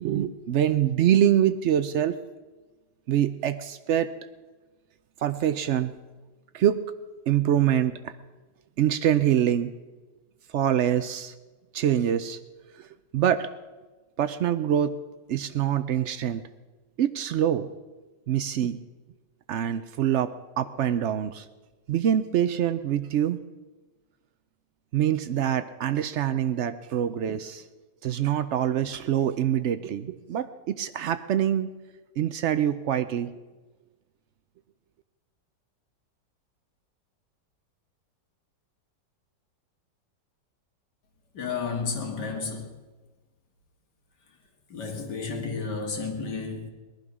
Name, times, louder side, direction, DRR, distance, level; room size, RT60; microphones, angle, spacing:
voice 1, 0.0-2.2 3.1-4.1 5.2-6.0 6.5-6.8 7.3-8.1 8.8-9.7 10.5-11.3 11.7-12.4 12.7-12.9 13.1-13.5 14.2-15.0 15.3-16.4 17.0-17.7 18.3-18.8 19.5-21.5 21.9-23.4 24.9-27.6 28.0-31.7 32.2-33.3, right 10 dB, 85° right, 0.6 m, -25 dB
voice 2, 41.3-42.8 44.7-46.7, left 4 dB, 70° left, 2.6 m, -32 dB
19.5 x 11.5 x 6.2 m
omnidirectional pair, 1.9 m